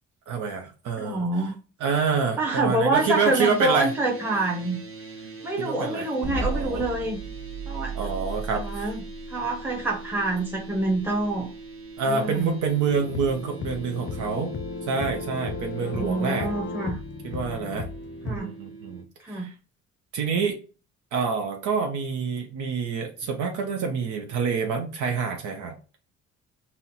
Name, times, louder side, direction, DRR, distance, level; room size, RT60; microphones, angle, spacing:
voice 1, 0.3-1.5 1.8-3.9 5.6-6.8 7.9-8.9 12.0-14.5 14.8-16.5 17.2-17.9 18.2-19.5 20.1-20.6 21.1-25.8, right 5 dB, 80° right, 3 dB, 0.7 m, -27 dB
voice 2, 1.0-1.5 2.4-4.8 5.4-7.2 7.7-8.0 8.5-9.0 9.3-11.5 12.1-12.5 15.8-17.0 18.2-18.5 19.2-19.5, right 2 dB, 5° right, -1 dB, 0.8 m, -27 dB
sound 1, 2.9-19.0, right 4 dB, 45° right, 1.1 m, -43 dB
sound 2, 6.2-12.4, right 3 dB, 25° right, 1.1 m, -35 dB
sound 3, 12.9-18.4, left 4 dB, 40° left, 0.5 m, -35 dB
4.2 x 2.1 x 4.0 m, 0.35 s
cardioid pair, 90°, 30 cm